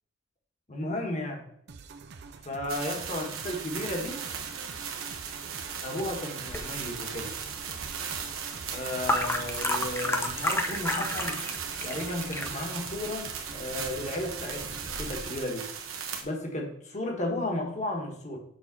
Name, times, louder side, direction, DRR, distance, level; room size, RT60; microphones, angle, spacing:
voice 1, 0.7-1.4 2.4-4.2 5.8-7.3 8.7-11.4 11.8-15.7 16.2-18.4, left 1 dB, 35° left, 1 dB, 1.4 m, -34 dB
sound 1, 1.7-15.4, right 4 dB, 55° right, 0.5 m, -47 dB
sound 2, 2.7-16.2, right 7 dB, 90° right, 1.0 m, -37 dB
sound 3, 6.5-15.2, left 1 dB, 10° left, 0.5 m, -34 dB
6.4 x 3.9 x 6.0 m, 0.70 s
head